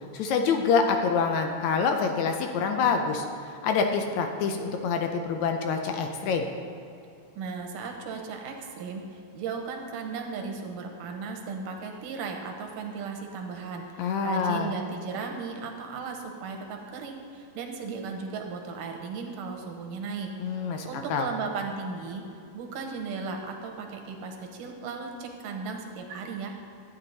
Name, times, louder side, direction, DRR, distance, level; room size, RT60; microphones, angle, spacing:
voice 1, 0.1-6.5 14.0-14.7 20.4-21.3, left 5 dB, 75° left, 5 dB, 1.8 m, -26 dB
voice 2, 7.4-20.3 20.9-22.2 22.5-26.5, right 5 dB, 90° right, 3 dB, 2.7 m, -36 dB
12.5 x 8.9 x 4.0 m, 2.6 s
omnidirectional pair, 3.6 m